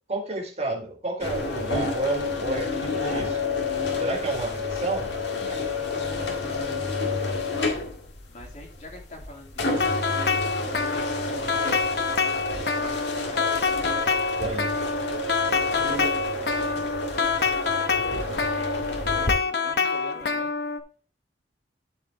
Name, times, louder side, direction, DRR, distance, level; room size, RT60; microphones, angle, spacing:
voice 1, 0.1-3.5 4.0-5.1 14.4-14.7 18.0-18.2, right 2 dB, 40° right, 1 dB, 1.7 m, -30 dB
sound 1, 1.2-19.3, left 2 dB, 90° left, 1.8 m, -30 dB
voice 2, 4.0-4.4 5.4-7.7 8.3-10.1 10.7-13.5 15.5-17.1 18.1-20.5, left 1 dB, 45° left, 0 dB, 2.7 m, -46 dB
sound 2, 9.8-20.8, left 5 dB, 65° left, 0.9 m, -26 dB
12.0 x 4.9 x 3.5 m, 0.36 s
head